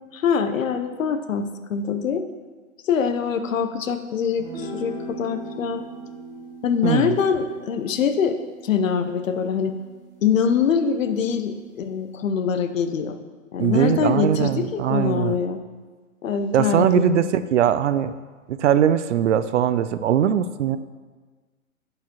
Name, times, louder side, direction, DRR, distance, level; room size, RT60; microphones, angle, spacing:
voice 1, 0.1-2.3 2.8-5.8 6.6-8.4 8.6-9.7 10.2-13.2 13.5-15.6 16.2-17.2, left 6 dB, 70° left, 8 dB, 0.7 m, -24 dB
sound 1, 4.4-10.9, right 1 dB, 10° right, 1.0 m, -40 dB
voice 2, 6.8-7.2 13.6-15.4 16.5-18.2 18.5-20.8, right 9 dB, 60° right, 13 dB, 0.5 m, -21 dB
11.0 x 4.8 x 2.9 m, 1.4 s
hypercardioid pair, 125°, 41 cm